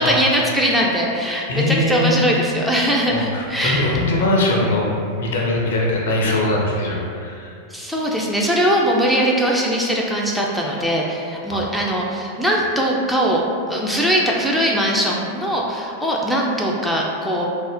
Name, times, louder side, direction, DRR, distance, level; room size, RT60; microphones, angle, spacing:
voice 1, 0.0-4.0 7.7-13.4 13.7-17.5, equal, ahead, -3 dB, 0.3 m, -20 dB
voice 2, 1.5-2.1 3.1-4.9 5.2-7.5 11.5-11.6, left 2 dB, 60° left, -2 dB, 0.5 m, -21 dB
2.4 x 2.0 x 3.4 m, 2.4 s
figure-of-eight pair, 90°, 0 cm